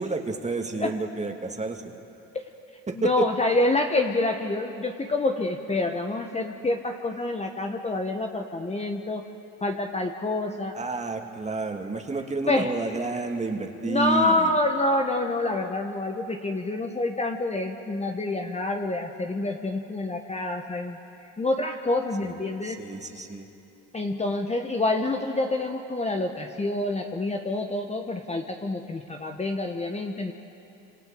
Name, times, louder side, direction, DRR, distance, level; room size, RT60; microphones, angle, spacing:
voice 1, 0.0-2.0 2.9-3.3 10.7-14.5 22.2-23.5, right 3 dB, 15° right, 4 dB, 2.1 m, -30 dB
voice 2, 3.0-9.2 9.6-10.7 12.5-12.7 13.8-21.0 21.4-22.8 23.9-30.3, left 2 dB, 15° left, 3 dB, 1.2 m, -27 dB
29.0 x 26.5 x 5.3 m, 2.8 s
supercardioid pair, 90°, 40 cm